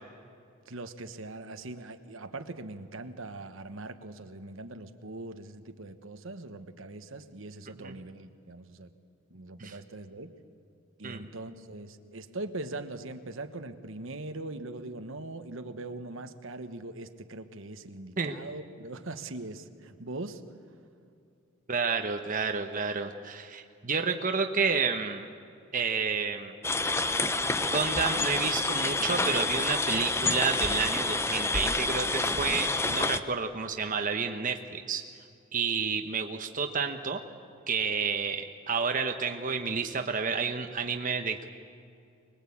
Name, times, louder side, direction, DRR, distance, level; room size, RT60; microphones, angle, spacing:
voice 1, 0.7-8.9 9.3-10.3 11.0-20.4, right 2 dB, 65° right, 8 dB, 1.3 m, -41 dB
voice 2, 21.7-25.3 25.7-26.5 27.7-35.0 35.5-37.2 37.7-41.4, right 5 dB, 40° right, 5 dB, 1.0 m, -30 dB
sound 1, 26.6-33.2, left 2 dB, 10° left, 0.7 m, -28 dB
25.0 x 20.5 x 8.5 m, 2.5 s
head